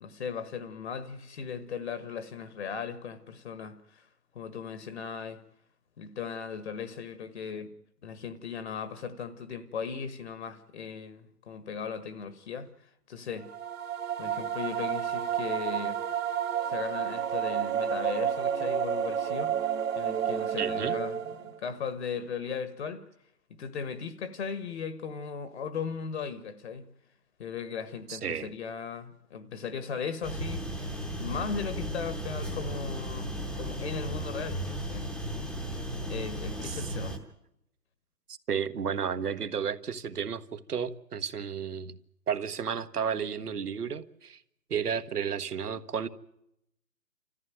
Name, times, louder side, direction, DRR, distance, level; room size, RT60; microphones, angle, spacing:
voice 1, 0.0-4.1 4.3-5.4 6.0-7.7 8.0-12.7 13.1-13.5 14.2-16.0 16.6-19.5 20.0-23.0 23.5-26.9 27.4-35.1 35.7-37.2, left 6 dB, 45° left, 1.5 m, -37 dB
sound 1, 13.4-21.6, right 9 dB, 60° right, 2.0 m, -30 dB
voice 2, 20.6-20.9 28.1-28.5 36.6-36.8 38.3-42.0 42.3-44.4 44.7-46.1, right 7 dB, 75° right, 1.5 m, -32 dB
sound 2, 30.2-37.2, equal, ahead, 1.0 m, -35 dB
27.5 x 14.0 x 9.2 m
hypercardioid pair, 155°, 46 cm